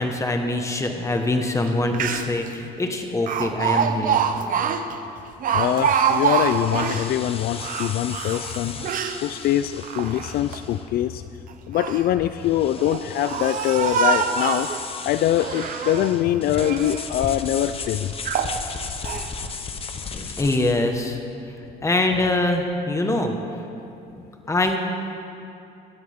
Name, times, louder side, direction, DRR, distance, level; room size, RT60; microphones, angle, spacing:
voice 1, 0.0-4.2 20.1-21.2 21.5-23.4 24.5-24.8, left 2 dB, 15° left, 4 dB, 1.5 m, -24 dB
Speech, 1.7-1.8 1.9-2.5 3.3-7.1 7.6-9.2 9.8-10.6 11.5-12.1 12.8-14.8 15.3-16.2 16.5-17.1 17.6-17.7 18.2-18.6 19.0-19.3, right 7 dB, 55° right, 0.9 m, -25 dB
voice 2, 5.5-8.9 9.2-11.2 11.7-14.7 15.0-18.1, left 12 dB, 65° left, 11 dB, 0.4 m, -23 dB
sound 1, 5.5-20.9, left 5 dB, 35° left, 1.0 m, -36 dB
19.0 x 13.0 x 3.7 m, 2.8 s
cardioid pair, 110°, 17 cm